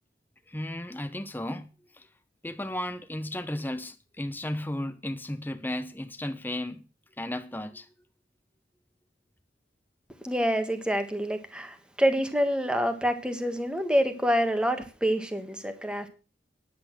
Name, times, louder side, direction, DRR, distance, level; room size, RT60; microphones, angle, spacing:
voice 1, 0.5-1.7 2.0-2.1 2.4-6.8 7.2-7.9, left 1 dB, 10° left, 0.9 m, -34 dB
voice 2, 10.2-16.1, equal, 5° right, 1.5 m, -27 dB
10.5 x 8.4 x 6.1 m
head